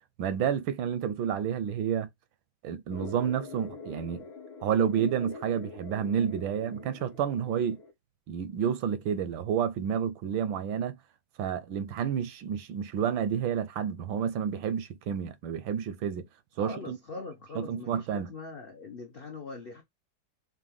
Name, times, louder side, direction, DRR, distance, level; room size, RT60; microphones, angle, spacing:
voice 1, 0.2-2.1 2.6-4.3 4.6-7.8 8.3-11.0 11.4-16.2 16.6-17.0 17.5-18.3, right 8 dB, 80° right, 1.5 m, -30 dB
sound 1, 2.9-7.9, left 4 dB, 85° left, 1.8 m, -44 dB
voice 2, 16.6-19.8, left 3 dB, 70° left, 0.5 m, -42 dB
6.2 x 2.3 x 3.4 m
omnidirectional pair, 2.1 m